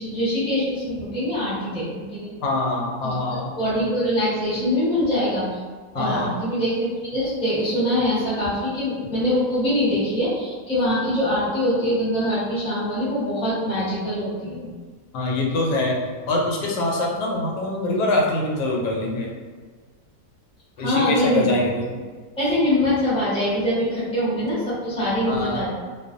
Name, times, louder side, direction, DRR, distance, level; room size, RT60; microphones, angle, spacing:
voice 1, 0.0-2.3 3.0-3.1 3.5-5.5 5.9-14.7 20.8-21.5 22.4-25.7, left 1 dB, 5° left, -10 dB, 0.7 m, -23 dB
voice 2, 2.4-3.5 5.9-6.3 15.1-16.0 16.3-19.3 20.8-21.9 25.3-25.6, left 2 dB, 90° left, -1 dB, 1.2 m, -24 dB
2.5 x 2.4 x 2.5 m, 1.5 s
omnidirectional pair, 1.8 m